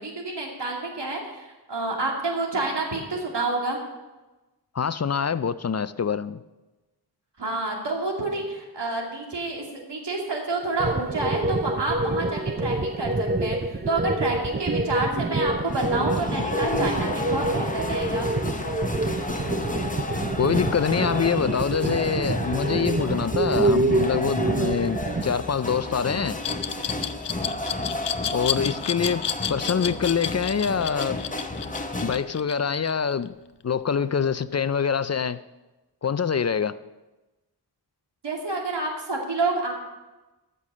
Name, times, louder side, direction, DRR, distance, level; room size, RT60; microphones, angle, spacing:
voice 1, 0.0-3.8 7.4-18.3 38.2-39.7, right 2 dB, 90° right, 2.5 m, -29 dB
voice 2, 4.7-6.4 20.4-26.4 28.3-31.2 32.0-33.4 33.6-35.4 36.0-36.7, left 6 dB, 40° left, 0.4 m, -25 dB
sound 1, 10.8-25.2, right 2 dB, 25° right, 0.6 m, -27 dB
sound 2, 15.7-32.2, left 2 dB, 20° left, 1.0 m, -32 dB
Glass, 26.4-33.3, left 9 dB, 90° left, 0.6 m, -30 dB
14.0 x 6.8 x 6.3 m
wide cardioid pair, 70°, 41 cm